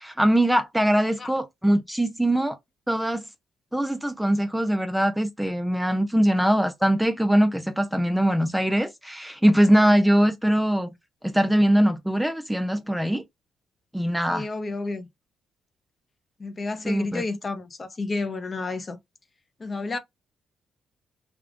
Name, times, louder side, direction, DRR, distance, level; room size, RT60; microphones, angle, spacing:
voice 1, 0.0-2.6 2.9-3.2 3.7-10.9 11.2-13.2 13.9-14.4 16.8-17.2, right 1 dB, 5° right, 0.5 m, -22 dB
voice 2, 1.0-1.3 14.3-15.1 16.4-19.0 19.6-20.0, left 3 dB, 30° left, 0.8 m, -31 dB
3.5 x 2.3 x 3.6 m
cardioid pair, 90°, 0 cm